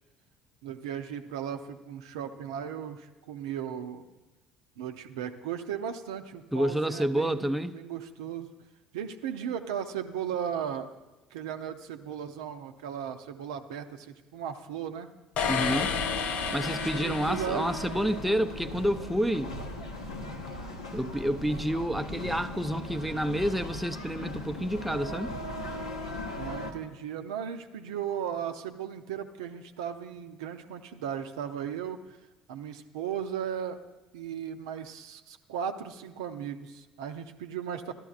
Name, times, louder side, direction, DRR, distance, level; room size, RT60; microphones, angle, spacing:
voice 1, 0.6-4.1 4.8-8.5 8.9-10.9 11.3-15.1 16.4-16.7 17.0-17.7 20.7-20.9 26.4-32.2 32.5-33.8 34.1-37.9, right 8 dB, 70° right, 0.5 m, -36 dB
voice 2, 6.5-7.8 15.5-16.0 16.5-19.6 20.9-25.3, equal, ahead, 0.4 m, -29 dB
sound 1, 15.4-26.7, left 1 dB, 80° left, 0.8 m, -38 dB
sound 2, 15.4-18.2, left 6 dB, 50° left, 0.6 m, -32 dB
13.0 x 11.5 x 2.4 m
figure-of-eight pair, 55°, 3 cm